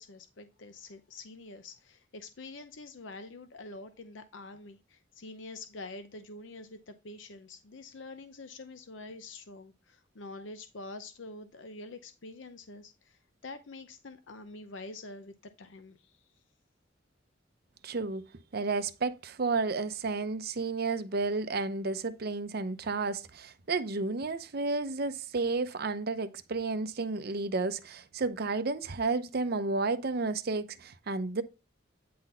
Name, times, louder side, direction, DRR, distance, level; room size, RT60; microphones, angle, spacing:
voice 1, 0.0-12.9 13.4-16.0, left 3 dB, 80° left, 0.7 m, -46 dB
voice 2, 17.8-18.2 18.5-31.4, right 3 dB, 55° right, 0.7 m, -32 dB
9.4 x 4.0 x 4.3 m
head